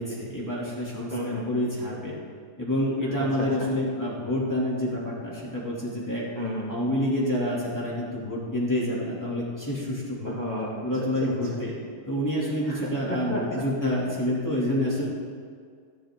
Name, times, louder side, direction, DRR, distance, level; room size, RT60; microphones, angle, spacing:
voice 1, 0.0-2.1 2.6-6.2 6.7-10.4 10.8-11.8 12.1-15.1, left 1 dB, 5° left, -6 dB, 1.9 m, -28 dB
voice 2, 1.1-1.5 3.2-3.5 6.3-6.8 10.2-10.9 11.2-11.3 12.7-13.6, equal, 60° left, -5 dB, 0.4 m, -32 dB
13.5 x 13.0 x 3.8 m, 2.1 s
omnidirectional pair, 4.0 m